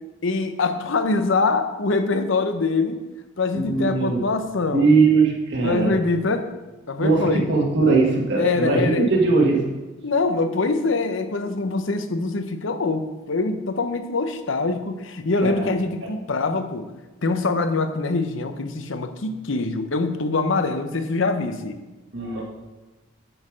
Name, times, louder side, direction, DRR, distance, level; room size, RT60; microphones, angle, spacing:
voice 1, 0.2-3.0 3.4-4.9 5.6-6.5 6.9-7.4 8.4-9.1 10.0-16.9 17.2-21.8, left 3 dB, 65° left, 8 dB, 0.7 m, -24 dB
voice 2, 3.5-4.3 4.7-6.0 7.0-9.6 15.4-15.7 16.0-16.1 22.1-22.4, right 3 dB, 55° right, -1 dB, 1.5 m, -20 dB
8.9 x 6.6 x 5.0 m, 1.1 s
head